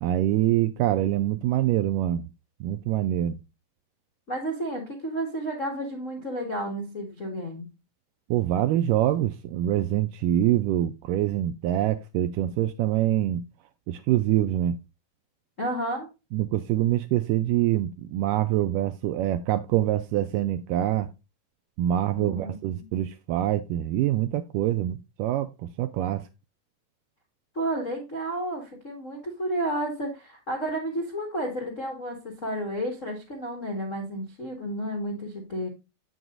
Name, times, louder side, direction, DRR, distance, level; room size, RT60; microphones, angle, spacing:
voice 1, 0.0-2.2 2.6-3.4 8.3-13.4 13.9-14.8 16.3-21.1 21.8-26.2, right 13 dB, 85° right, 1.9 m, -25 dB
voice 2, 4.3-7.7 15.6-16.1 22.2-22.9 27.5-35.7, right 1 dB, 90° left, 0.6 m, -31 dB
8.0 x 7.8 x 2.5 m
omnidirectional pair, 4.3 m